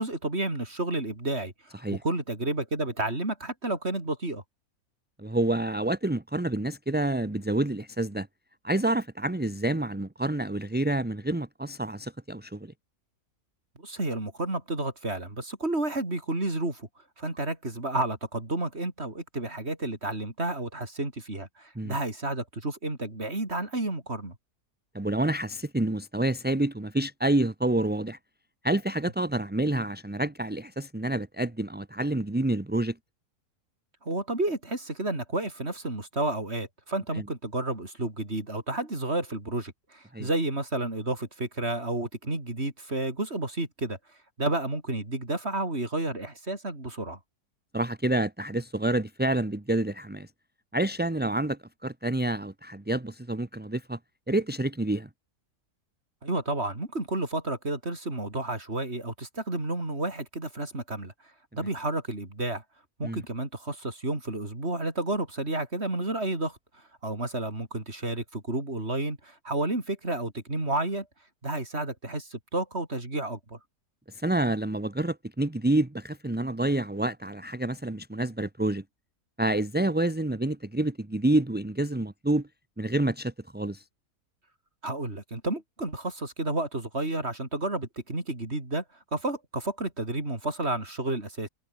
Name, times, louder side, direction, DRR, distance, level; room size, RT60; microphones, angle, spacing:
voice 1, 0.0-1.8 2.0-4.4 13.8-16.9 17.2-24.4 34.0-44.0 44.4-47.2 56.2-61.1 61.5-62.6 63.0-66.6 67.0-71.1 71.4-73.6 84.8-88.8 89.1-91.5, right 2 dB, 45° right, 5.0 m, -31 dB
voice 2, 5.2-8.3 8.6-12.7 21.8-21.9 24.9-28.2 28.6-33.0 37.1-37.2 40.1-40.3 47.7-50.3 50.7-54.0 54.3-55.1 63.0-63.2 74.1-78.8 79.4-82.5 82.8-83.8, right 1 dB, 10° right, 0.7 m, -28 dB
omnidirectional pair, 1.6 m